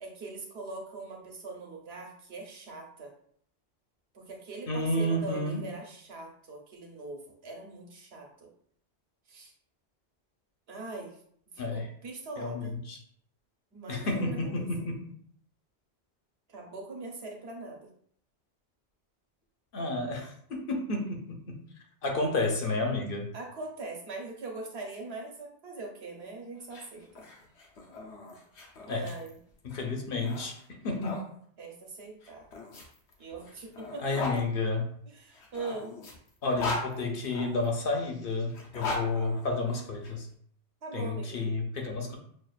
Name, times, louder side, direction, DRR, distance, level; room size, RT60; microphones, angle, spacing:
voice 1, 0.0-3.1 4.1-8.5 9.3-9.5 10.7-11.2 11.5-12.8 13.7-14.6 16.5-17.9 22.9-23.0 23.3-27.2 28.8-29.4 31.6-32.5 33.2-34.4 35.1-36.0 40.8-41.5, right 3 dB, 65° right, 0 dB, 1.1 m, -42 dB
voice 2, 4.7-5.6 11.6-11.9 12.4-13.0 13.9-15.0 19.7-21.6 22.0-23.3 28.9-29.1 29.6-30.6 30.8-31.3 34.0-34.8 36.4-40.3 40.9-42.2, left 2 dB, 60° left, 2 dB, 0.8 m, -31 dB
sound 1, 26.6-31.2 32.2-34.4 35.3-37.7 38.5-40.1, left 3 dB, 80° left, 1.1 m, -39 dB
6.2 x 2.4 x 2.4 m, 0.63 s
omnidirectional pair, 1.1 m